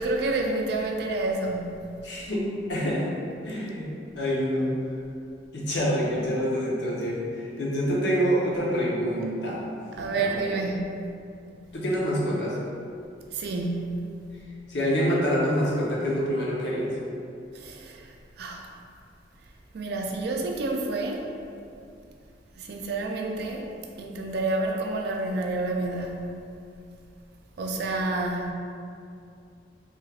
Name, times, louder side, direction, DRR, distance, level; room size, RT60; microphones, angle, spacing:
voice 1, 0.0-1.9 10.0-11.1 13.3-14.2 17.5-18.7 19.7-21.3 22.6-23.7 24.0-26.3 27.6-28.5, right 2 dB, 60° right, 1 dB, 0.4 m, -29 dB
voice 2, 2.0-3.1 3.4-3.9 4.2-4.7 5.5-9.7 10.1-10.5 11.7-12.6 14.7-16.9, equal, 75° left, -5 dB, 0.7 m, -26 dB
3.3 x 3.1 x 2.3 m, 2.5 s
head